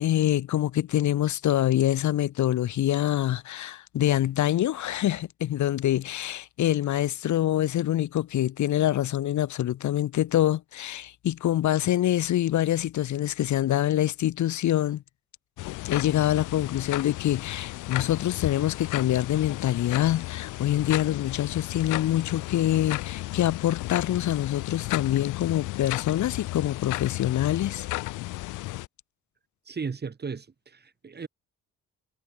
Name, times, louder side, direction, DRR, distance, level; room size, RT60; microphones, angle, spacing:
voice 1, 0.0-15.0 15.8-27.9, left 12 dB, 70° left, 1.5 m, -25 dB
sound 1, 15.6-28.9, left 19 dB, 90° left, 0.7 m, -34 dB
voice 2, 29.7-30.5 30.7-31.3, right 5 dB, 35° right, 2.8 m, -35 dB
cardioid pair, 90°, 30 cm